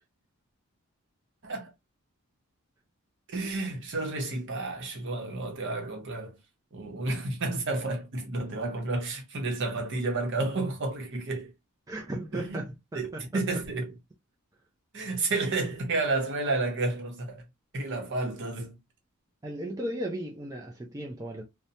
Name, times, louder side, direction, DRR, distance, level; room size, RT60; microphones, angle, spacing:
voice 1, 3.3-6.3 6.7-11.5 12.3-12.6 12.9-13.9 14.9-17.4 17.7-18.7, right 2 dB, 55° right, 0.9 m, -31 dB
voice 2, 11.9-13.4 19.4-21.4, right 1 dB, 15° right, 0.4 m, -36 dB
2.7 x 2.1 x 2.6 m
head